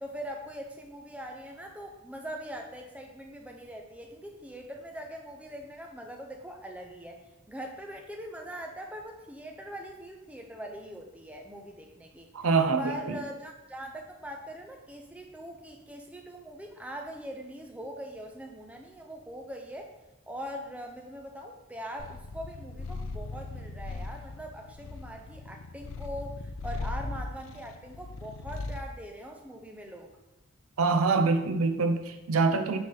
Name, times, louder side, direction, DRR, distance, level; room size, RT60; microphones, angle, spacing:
voice 1, 0.0-7.2 7.5-12.3 12.8-19.9 20.3-30.1, equal, 5° right, 2 dB, 0.5 m, -42 dB
voice 2, 12.3-13.0 30.8-32.8, right 4 dB, 90° right, 8 dB, 0.6 m, -25 dB
Purr, 22.0-28.9, left 3 dB, 70° left, 0.5 m, -39 dB
5.0 x 3.8 x 5.6 m, 0.98 s
head